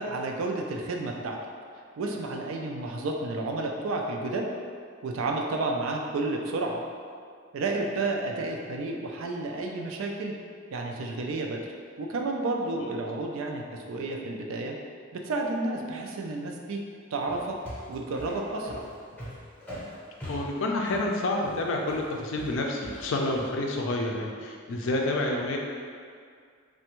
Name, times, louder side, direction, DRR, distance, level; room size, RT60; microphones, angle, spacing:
voice 1, 0.0-1.4 2.0-4.5 5.0-6.8 7.5-10.3 10.7-11.6 12.0-13.6 13.9-14.7 15.1-16.8 17.1-17.6 17.9-18.8, right 2 dB, 80° right, 1 dB, 0.4 m, -31 dB
sound 1, 17.3-23.5, equal, 10° left, 0.6 m, -42 dB
voice 2, 20.3-25.6, left 2 dB, 65° left, 0 dB, 0.4 m, -29 dB
3.3 x 2.1 x 2.9 m, 2.2 s
head